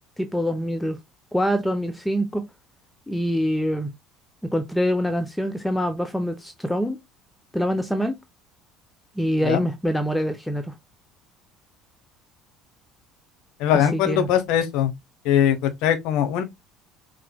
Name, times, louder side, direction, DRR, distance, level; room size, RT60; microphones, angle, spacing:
voice 1, 0.2-1.0 1.3-2.4 3.1-3.9 4.4-7.0 7.5-8.1 9.2-10.7 13.7-14.3, equal, 5° left, 0.8 m, -25 dB
voice 2, 13.6-14.9 15.2-16.4, left 10 dB, 60° left, 0.9 m, -21 dB
5.8 x 3.2 x 2.2 m
figure-of-eight pair, 60°, 0 cm